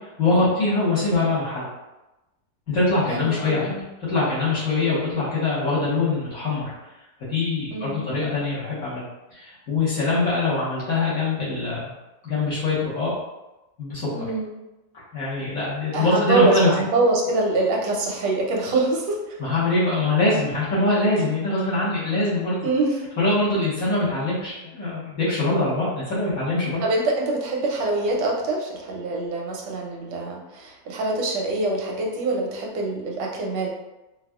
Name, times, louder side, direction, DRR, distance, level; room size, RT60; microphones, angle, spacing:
voice 1, 0.2-1.6 2.7-3.7 4.1-6.7 7.2-9.0 9.3-11.9 12.2-13.1 13.8-14.3 15.1-16.7 19.4-22.6 23.2-26.8, left 2 dB, 55° left, -11 dB, 1.6 m, -23 dB
voice 2, 3.1-3.8 7.7-8.1 14.1-14.5 15.9-19.4 22.6-23.0 26.8-33.7, right 2 dB, 90° right, -1 dB, 1.3 m, -24 dB
4.1 x 2.3 x 2.3 m, 1.0 s
omnidirectional pair, 1.8 m